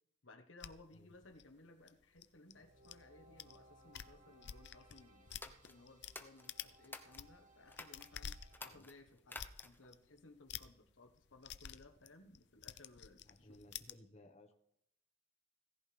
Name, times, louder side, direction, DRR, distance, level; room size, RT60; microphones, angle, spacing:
voice 1, 0.2-13.6, left 2 dB, 85° left, 6 dB, 1.4 m, -61 dB
sound 1, 0.6-3.0 3.4-3.6 3.8-6.2 6.5-6.8 7.1-14.0, left 9 dB, 60° left, 0.6 m, -50 dB
sound 2, 2.4-8.7, right 1 dB, 40° right, 2.0 m, -65 dB
sound 3, 5.3-7.3 7.7-8.1 8.5-9.9, left 2 dB, 10° left, 1.0 m, -52 dB
voice 2, 13.2-14.5, left 1 dB, 35° left, 4 dB, 1.4 m, -60 dB
18.0 x 14.5 x 3.5 m, 0.79 s
head